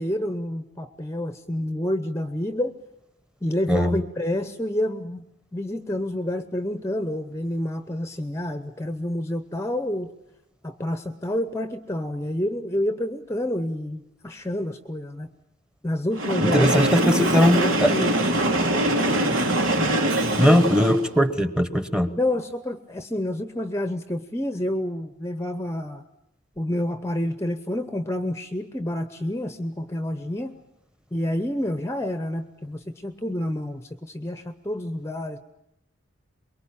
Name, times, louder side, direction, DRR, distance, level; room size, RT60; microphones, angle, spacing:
voice 1, 0.0-2.7 3.4-5.2 5.5-10.1 10.6-15.3 15.8-16.7 17.0-18.2 19.1-19.3 19.8-20.0 20.4-20.7 22.2-26.0 26.6-30.6 31.1-35.4, left 1 dB, 15° left, 10 dB, 0.9 m, -28 dB
Train, 16.1-21.1, right 1 dB, 80° right, 2.9 m, -23 dB
voice 2, 16.4-17.9 20.4-22.1, equal, 5° right, 11 dB, 1.2 m, -19 dB
24.0 x 22.5 x 8.7 m, 0.85 s
head